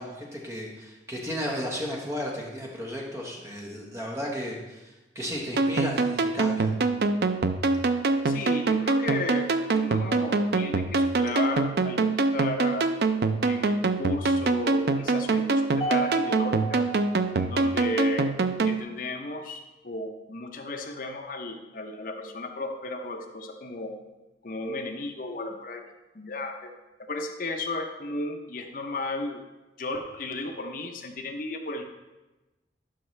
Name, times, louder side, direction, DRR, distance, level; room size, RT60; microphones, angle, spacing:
voice 1, 0.0-6.8, equal, 15° right, -1 dB, 1.3 m, -34 dB
sound 1, 5.6-18.8, right 3 dB, 65° right, 0.5 m, -25 dB
voice 2, 8.2-9.5 9.7-12.9 13.4-16.8 17.3-18.3 18.6-23.9 24.4-25.8 26.1-26.7 27.1-29.4 29.8-31.8, left 2 dB, 50° left, 4 dB, 0.8 m, -34 dB
Mallet percussion, 15.8-18.2, right 4 dB, 25° left, 1.7 m, -34 dB
11.5 x 5.5 x 3.3 m, 1.1 s
head